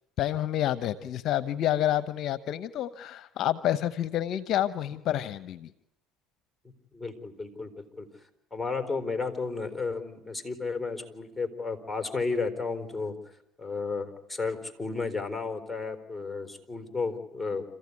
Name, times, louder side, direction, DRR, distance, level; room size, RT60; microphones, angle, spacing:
voice 1, 0.2-5.7, left 12 dB, 60° left, 15 dB, 0.8 m, -28 dB
voice 2, 6.9-7.7 8.0-8.1 8.5-13.2 13.6-17.6, left 4 dB, 5° left, 6 dB, 4.1 m, -33 dB
27.5 x 15.0 x 9.7 m, 0.83 s
supercardioid pair, 90°, 0 cm